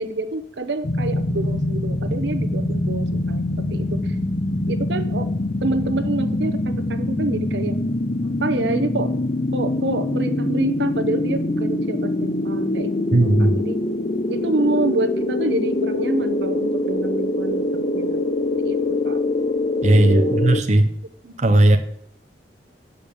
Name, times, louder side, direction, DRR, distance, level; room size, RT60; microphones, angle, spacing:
voice 1, 0.0-4.2 4.7-5.3 5.6-7.8 8.2-9.1 9.5-13.8 14.3-18.2 18.6-19.2 20.1-20.5 21.2-21.3, right 2 dB, 75° right, 9 dB, 0.9 m, -27 dB
sound 1, 0.8-20.6, left 2 dB, 40° left, 0.7 m, -24 dB
voice 2, 13.1-13.5 19.8-20.9 21.4-21.8, right 1 dB, 40° right, 6 dB, 0.7 m, -16 dB
8.2 x 5.2 x 6.8 m, 0.64 s
head